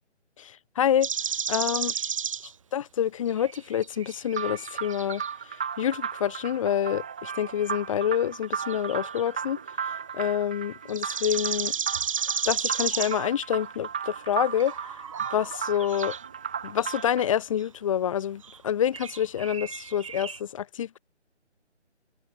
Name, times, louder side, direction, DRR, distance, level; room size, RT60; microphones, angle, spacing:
voice 1, 0.4-1.1 1.5-1.9 2.7-5.2 5.8-11.7 12.5-14.7 15.3-16.2 16.6-21.0, left 9 dB, 25° left, 5.3 m, -27 dB
sound 1, 1.0-2.5 3.3-5.3 8.6-9.2 10.9-13.3 14.2-16.2 16.8-17.1 17.6-17.7 18.4-18.6 18.9-20.4, right 7 dB, 30° right, 1.4 m, -33 dB
sound 2, 4.3-17.3, right 7 dB, 5° right, 0.7 m, -35 dB
figure-of-eight pair, 150°, 35 cm